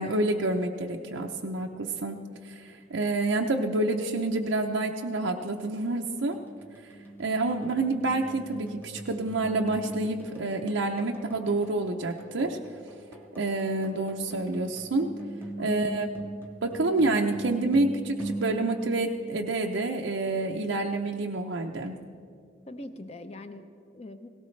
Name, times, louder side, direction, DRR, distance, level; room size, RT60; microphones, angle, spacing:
voice 1, 0.0-2.2 2.4-6.4 6.8-6.9 7.2-12.6 13.4-15.1 15.6-16.1 16.6-21.9, right 2 dB, 90° right, 1 dB, 0.7 m, -28 dB
sound 1, 5.6-19.8, right 1 dB, 10° left, 1.1 m, -41 dB
voice 2, 15.6-16.1 22.7-24.3, left 1 dB, 35° left, 9 dB, 0.6 m, -43 dB
17.5 x 17.0 x 3.2 m, 2.3 s
head